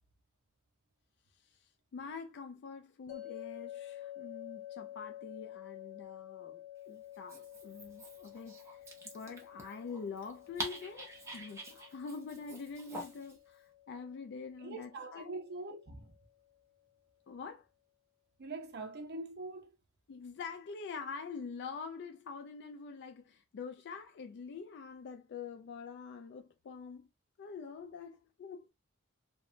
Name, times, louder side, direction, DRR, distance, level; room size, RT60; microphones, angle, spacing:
voice 1, 1.4-8.8 9.1-15.3 17.3-17.7 20.1-27.1 27.4-28.7, left 5 dB, 55° left, 0.3 m, -45 dB
sound 1, 3.1-16.2, left 13 dB, 80° left, 1.0 m, -50 dB
Dog, 7.1-13.4, right 1 dB, 15° right, 0.6 m, -47 dB
voice 2, 14.6-16.2 18.4-19.7, right 2 dB, 50° right, 0.6 m, -43 dB
3.0 x 2.1 x 2.5 m
head